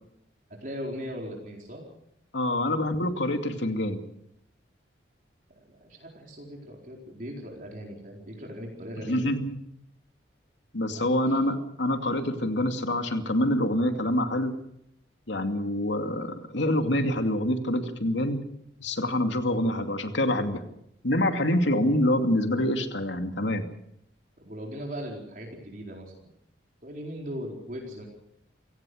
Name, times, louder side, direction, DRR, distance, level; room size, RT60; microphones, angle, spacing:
voice 1, 0.6-1.8 5.5-9.3 10.9-11.4 24.4-26.3 26.8-28.1, equal, 45° right, -1 dB, 4.5 m, -39 dB
voice 2, 2.3-4.0 9.0-9.6 10.7-14.5 15.3-18.4 18.8-20.6 21.0-23.6, left 1 dB, 80° left, 5 dB, 2.5 m, -26 dB
28.5 x 17.5 x 6.5 m, 0.76 s
head